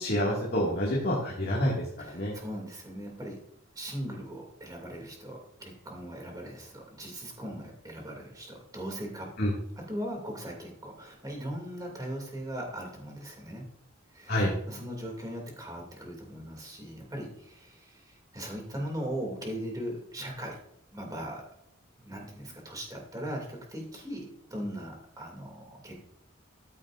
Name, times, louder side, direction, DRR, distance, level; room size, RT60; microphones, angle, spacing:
voice 1, 0.0-2.3 9.4-9.5 14.3-14.5, equal, 50° left, -4 dB, 2.1 m, -28 dB
voice 2, 2.0-3.4 3.7-13.7 14.1-20.6 20.9-21.4 22.0-25.9, equal, 20° right, 0 dB, 2.6 m, -39 dB
14.0 x 8.8 x 2.6 m, 0.74 s
head